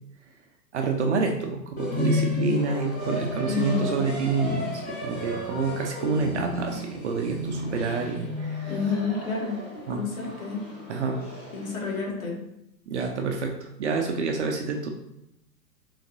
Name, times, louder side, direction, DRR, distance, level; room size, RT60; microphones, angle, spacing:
voice 1, 0.7-8.7 9.9-10.0 10.9-11.2 12.9-14.9, right 4 dB, 45° right, 2 dB, 0.5 m, -28 dB
sound 1, 1.8-12.0, left 2 dB, 15° left, 0.6 m, -32 dB
voice 2, 3.5-4.0 8.7-9.6 9.9-10.7 11.5-12.4, left 5 dB, 55° left, -2 dB, 1.4 m, -29 dB
3.8 x 2.8 x 2.7 m, 0.80 s
figure-of-eight pair, 110°, 50 cm